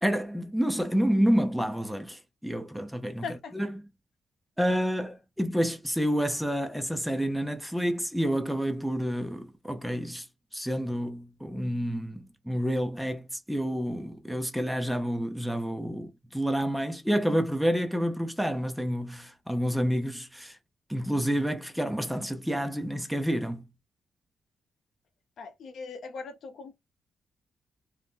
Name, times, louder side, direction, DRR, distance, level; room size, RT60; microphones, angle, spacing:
voice 1, 0.0-3.2 3.5-3.9 4.6-10.3 10.5-20.6 20.9-23.7, equal, ahead, 0.7 m, -29 dB
voice 2, 3.2-3.6 25.4-26.7, left 5 dB, 70° left, 0.8 m, -39 dB
2.6 x 2.1 x 3.5 m
cardioid pair, 70°, 0 cm